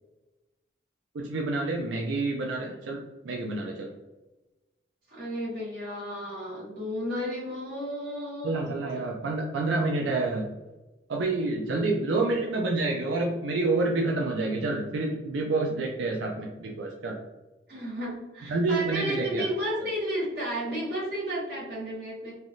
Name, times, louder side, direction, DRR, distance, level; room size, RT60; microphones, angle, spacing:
voice 1, 1.1-3.9 8.4-10.5 11.1-17.2 18.5-19.5, right 3 dB, 90° right, 0 dB, 0.4 m, -28 dB
voice 2, 5.1-9.1 15.7-15.8 17.7-22.3, equal, 55° right, -6 dB, 1.5 m, -33 dB
3.3 x 2.3 x 2.5 m, 1.1 s
head